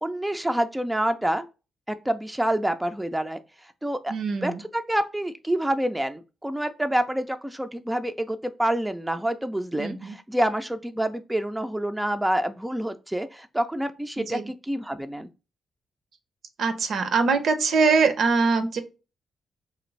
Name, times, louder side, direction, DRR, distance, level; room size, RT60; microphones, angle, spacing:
voice 1, 0.0-1.4 2.1-3.4 3.8-4.1 4.4-4.5 4.9-10.0 10.3-15.3, right 1 dB, 10° right, 0.3 m, -27 dB
voice 2, 4.1-4.6 9.8-10.2 14.2-14.5 16.6-18.8, right 4 dB, 70° right, 0.5 m, -23 dB
3.2 x 2.5 x 3.1 m
cardioid pair, 85°, 0 cm